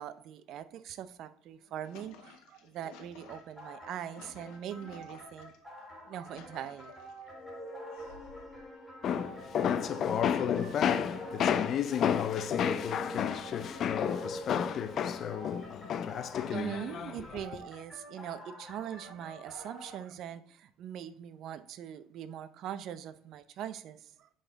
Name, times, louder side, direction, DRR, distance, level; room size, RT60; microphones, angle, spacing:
voice 1, 0.0-5.7 6.1-6.9 16.5-24.3, right 10 dB, 50° right, 0.5 m, -42 dB
sound 1, 1.6-5.6 6.0-7.3 7.9-8.6, left 6 dB, 80° left, 1.1 m, -55 dB
sound 2, 3.3-20.0, equal, ahead, 2.4 m, -50 dB
sound 3, 7.2-15.3, left 1 dB, 20° left, 1.3 m, -45 dB
voice 2, 9.0-17.3, left 8 dB, 40° left, 0.4 m, -31 dB
10.0 x 4.1 x 3.9 m
cardioid pair, 150°, 0 cm